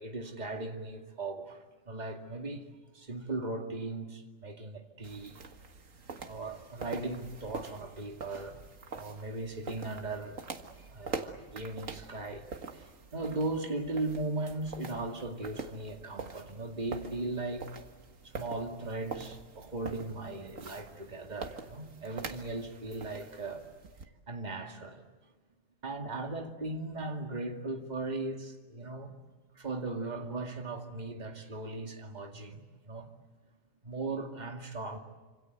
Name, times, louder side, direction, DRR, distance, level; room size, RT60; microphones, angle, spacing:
voice 1, 0.0-2.7 2.9-5.4 6.2-8.6 8.9-10.4 10.9-12.4 12.7-17.7 18.2-23.6 24.3-25.0 25.8-29.1 29.6-33.1 33.8-35.0, right 2 dB, 35° right, 2.4 m, -38 dB
sound 1, 5.0-24.0, right 4 dB, 85° right, 2.1 m, -45 dB
26.5 x 26.5 x 8.0 m
omnidirectional pair, 1.3 m